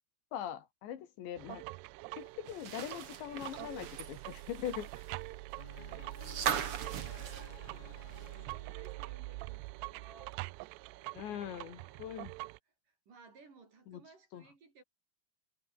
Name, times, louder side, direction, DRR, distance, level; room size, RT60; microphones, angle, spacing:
voice 1, 0.3-1.6 2.2-4.9 11.1-12.3 13.9-14.0 14.3-14.4, left 10 dB, 70° left, 4.3 m, -41 dB
sound 1, 1.4-12.6, right 23 dB, 85° right, 2.4 m, -44 dB
sound 2, 2.5-8.5 8.8-8.9 10.3-10.4, right 8 dB, 70° right, 1.3 m, -40 dB
voice 2, 4.6-5.4 7.0-10.5 10.9-12.1 12.9-14.8, right 4 dB, 45° right, 6.6 m, -59 dB
sound 3, 5.6-9.6, left 8 dB, 55° left, 4.4 m, -55 dB
omnidirectional pair, 5.4 m